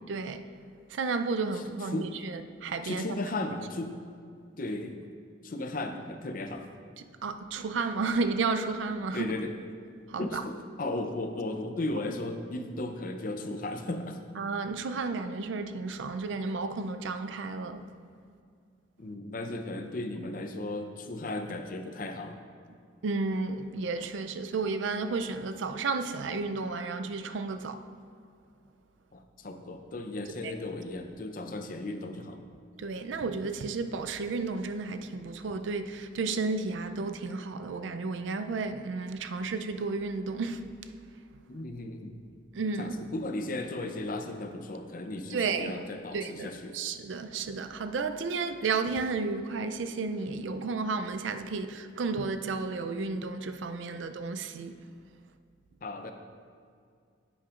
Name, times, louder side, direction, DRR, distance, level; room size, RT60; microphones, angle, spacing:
voice 1, 0.1-0.4 0.9-3.0 7.2-9.4 10.1-10.4 14.4-17.9 23.0-27.8 32.8-40.6 42.5-43.0 45.3-45.7 46.1-54.8, right 4 dB, 85° right, 0.4 m, -32 dB
voice 2, 1.5-2.1 2.8-4.0 4.6-5.1 5.4-6.6 9.1-9.5 10.2-14.2 19.0-22.4 29.1-32.4 41.5-42.2 42.8-46.8 55.8-56.1, left 2 dB, 50° left, 0.6 m, -35 dB
9.9 x 8.5 x 2.5 m
head